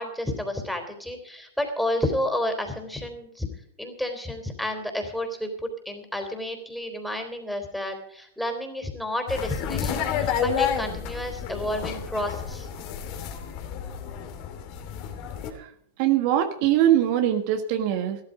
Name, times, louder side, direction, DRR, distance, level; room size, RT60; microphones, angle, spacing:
voice 1, 0.0-3.5 3.8-12.7, left 1 dB, ahead, 4 dB, 3.7 m, -30 dB
sound 1, 9.3-15.5, left 8 dB, 50° left, 2.8 m, -30 dB
voice 2, 16.0-18.2, right 11 dB, 55° right, 7 dB, 1.5 m, -22 dB
15.0 x 13.0 x 5.1 m, 0.70 s
hypercardioid pair, 105°, 0 cm